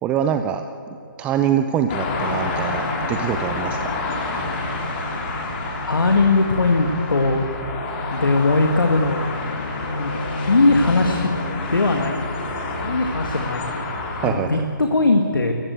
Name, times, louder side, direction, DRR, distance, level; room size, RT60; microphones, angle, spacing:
voice 1, 0.0-0.6 1.2-3.9 14.2-14.6, right 9 dB, 10° right, 8 dB, 0.4 m, -24 dB
sound 1, 1.9-14.3, left 2 dB, 30° left, 3.4 m, -28 dB
voice 2, 5.8-7.4 8.1-9.4 10.0-10.2 10.5-11.4 11.7-13.8 14.2-15.5, left 3 dB, 75° left, 4 dB, 1.8 m, -20 dB
24.0 x 15.0 x 8.1 m, 2.8 s
figure-of-eight pair, 145°, 11 cm